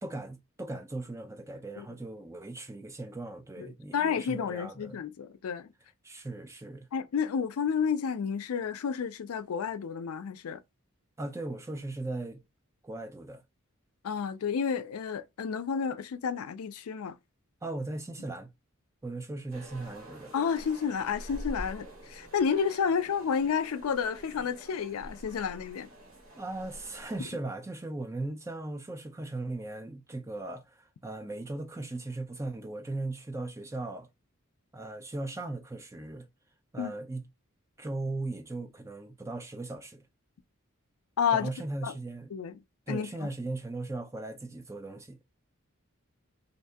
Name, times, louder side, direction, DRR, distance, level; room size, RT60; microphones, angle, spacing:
voice 1, 0.0-5.0 6.0-6.9 11.2-12.4 12.8-13.4 17.6-18.5 19.0-20.3 26.4-34.1 34.7-36.3 36.7-37.2 37.8-40.0 41.3-42.3 42.9-45.2, right 2 dB, 15° right, 0.4 m, -38 dB
voice 2, 3.9-5.7 6.9-10.6 14.0-17.2 20.3-25.9 36.8-36.9 41.2-41.5 41.8-41.9 42.3-42.6 42.9-43.3, left 6 dB, 85° left, 0.4 m, -31 dB
sound 1, 19.5-27.2, right 1 dB, 75° right, 1.6 m, -46 dB
2.6 x 2.6 x 3.4 m
head